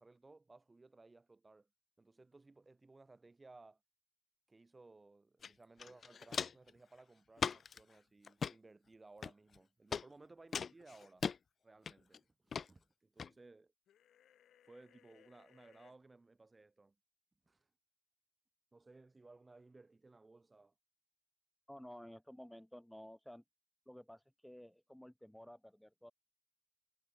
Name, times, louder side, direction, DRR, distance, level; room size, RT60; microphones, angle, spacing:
voice 1, 0.0-1.7 2.0-3.8 4.5-11.2 11.6-13.7 14.6-17.0 17.5-17.7 18.7-20.7, right 3 dB, 20° right, 4.0 m, -61 dB
Walk footsteps, 5.4-5.5 5.8-6.7 7.4-7.8 8.2-8.5 9.2-9.6 9.9-10.0 10.5-11.4 11.9-12.2 12.5-12.7 13.2-13.3, left 6 dB, 50° left, 0.4 m, -39 dB
sound 1, 13.9-16.0, left 10 dB, 80° left, 4.5 m, -67 dB
voice 2, 21.7-23.4 23.8-26.1, equal, 5° left, 5.0 m, -54 dB
cardioid pair, 110°, 0 cm